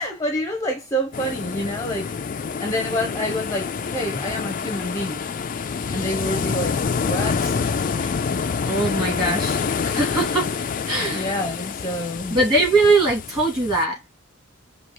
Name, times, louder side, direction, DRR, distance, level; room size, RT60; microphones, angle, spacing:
voice 1, 0.0-5.2 5.9-7.6 8.0-8.1 11.1-12.4, equal, 15° left, 0.8 m, -28 dB
sound 1, 1.1-13.8, left 5 dB, 40° left, 0.4 m, -27 dB
voice 2, 8.6-9.6 9.8-10.5 10.9-11.3 12.3-14.0, right 2 dB, 20° right, 2.4 m, -21 dB
4.5 x 2.9 x 2.9 m
head